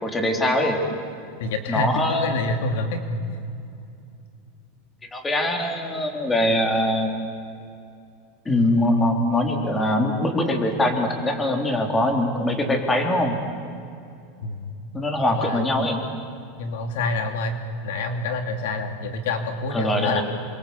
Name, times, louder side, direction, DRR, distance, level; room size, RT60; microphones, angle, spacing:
voice 1, 0.0-0.8 1.7-2.4 5.1-7.1 8.5-13.4 14.9-16.0 19.7-20.2, left 1 dB, 15° left, 3 dB, 3.7 m, -22 dB
voice 2, 1.4-3.0 3.3-3.4 14.4-14.7 15.3-15.6 16.6-20.2, left 2 dB, 75° left, 6 dB, 2.9 m, -27 dB
28.0 x 24.0 x 8.5 m, 2.5 s
supercardioid pair, 130°, 0 cm